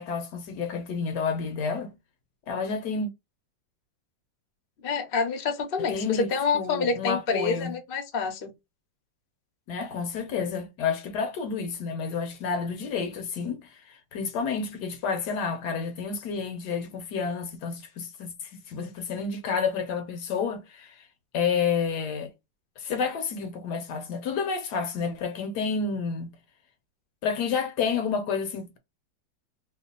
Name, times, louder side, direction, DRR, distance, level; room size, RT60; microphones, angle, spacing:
voice 1, 0.0-1.9 2.5-3.1 5.8-7.7 9.7-21.0 21.3-22.3 22.8-26.3 27.2-28.8, left 5 dB, 70° left, 1.2 m, -30 dB
voice 2, 4.8-8.5, left 5 dB, 50° left, 0.7 m, -27 dB
2.9 x 2.3 x 3.8 m
omnidirectional pair, 2.0 m